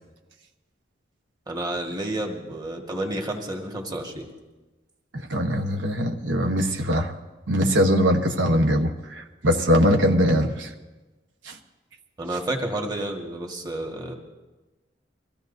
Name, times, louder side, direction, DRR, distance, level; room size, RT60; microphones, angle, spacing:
voice 1, 1.5-4.3 12.2-14.2, right 1 dB, 20° right, 1 dB, 1.6 m, -30 dB
voice 2, 5.1-7.1 7.5-10.7 11.4-11.6, equal, 90° right, 4 dB, 1.1 m, -22 dB
23.0 x 15.5 x 2.7 m, 1.2 s
head